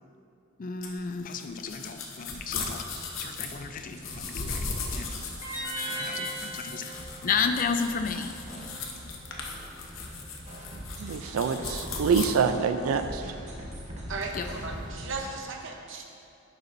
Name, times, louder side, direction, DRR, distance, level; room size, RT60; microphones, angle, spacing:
voice 1, 0.6-2.9 3.2-5.2 6.0-8.6 14.3-14.6, left 5 dB, 40° left, 7 dB, 0.4 m, -33 dB
sound 1, 0.8-12.3, left 4 dB, 65° left, 0.9 m, -37 dB
sound 2, 2.3-15.3, equal, 35° right, 1.0 m, -43 dB
sound 3, 5.4-8.6, right 1 dB, 15° right, 1.9 m, -38 dB
voice 2, 11.0-13.4, right 6 dB, 85° right, 8 dB, 0.4 m, -26 dB
voice 3, 14.1-16.0, right 3 dB, 60° right, 2 dB, 0.8 m, -36 dB
10.0 x 6.8 x 2.6 m, 2.5 s
head